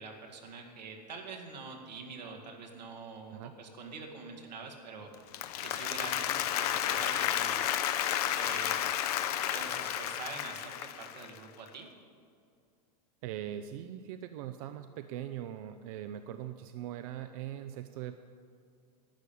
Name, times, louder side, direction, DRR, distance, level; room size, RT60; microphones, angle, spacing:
voice 1, 0.0-5.1 5.6-7.6 8.2-8.9 9.5-11.9, right 4 dB, 90° right, 1 dB, 2.1 m, -45 dB
Applause, 5.1-11.4, left 11 dB, 65° left, 0.8 m, -32 dB
voice 2, 13.2-18.2, right 11 dB, 60° right, 9 dB, 0.6 m, -41 dB
11.5 x 9.0 x 7.0 m, 2.4 s
hypercardioid pair, 110°, 21 cm